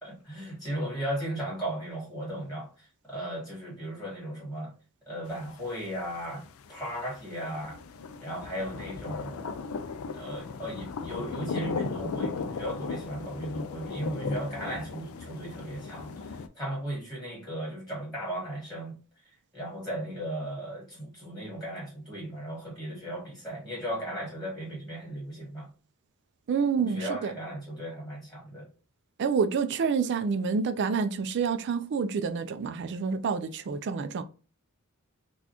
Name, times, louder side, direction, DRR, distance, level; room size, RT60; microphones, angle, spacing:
voice 1, 0.0-4.7 5.1-7.8 8.2-9.6 10.1-19.0 19.2-25.7 26.7-28.7, right 1 dB, ahead, 1.5 m, -36 dB
sound 1, 5.3-16.5, left 5 dB, 65° left, 0.4 m, -37 dB
voice 2, 26.5-27.3 29.2-34.2, right 5 dB, 50° right, 0.4 m, -28 dB
4.1 x 2.3 x 2.8 m
head